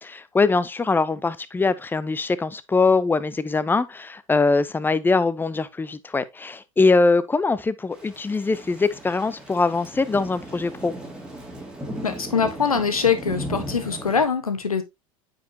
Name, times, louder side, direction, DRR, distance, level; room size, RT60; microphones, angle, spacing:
voice 1, 0.0-10.9, left 3 dB, 10° left, 0.7 m, -22 dB
Thunder / Rain, 7.9-14.2, right 1 dB, 5° right, 2.8 m, -36 dB
voice 2, 12.0-14.8, left 6 dB, 90° left, 1.2 m, -23 dB
9.2 x 5.2 x 2.9 m
hypercardioid pair, 85°, 18 cm